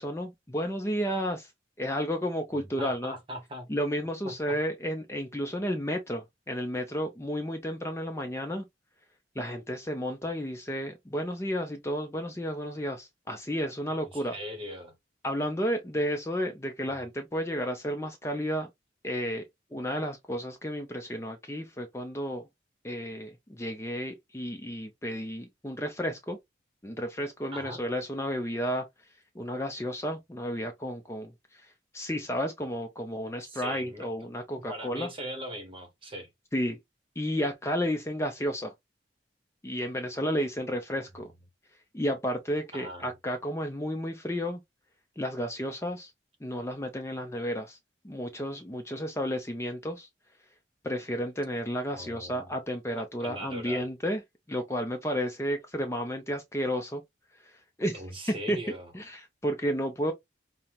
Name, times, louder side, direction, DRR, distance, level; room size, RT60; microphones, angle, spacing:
voice 1, 0.0-1.5 1.8-3.1 3.7-8.6 9.4-14.3 15.2-18.7 19.0-19.4 19.7-22.4 22.8-26.4 26.8-28.9 29.4-31.7 31.9-35.1 36.5-36.8 37.2-38.7 39.6-41.3 41.9-44.6 45.2-46.1 46.4-47.8 48.0-50.1 50.8-54.2 54.5-57.0 57.8-58.0 58.5-58.6 58.9-60.1, equal, 15° left, 0.5 m, -32 dB
voice 2, 2.6-3.7 4.2-4.6 14.1-14.9 16.9-17.0 27.5-27.8 33.4-34.1 34.7-36.3 42.7-43.1 51.9-52.5 53.0-53.9 57.9-58.9, equal, 25° right, 1.0 m, -40 dB
5.4 x 2.1 x 2.9 m
head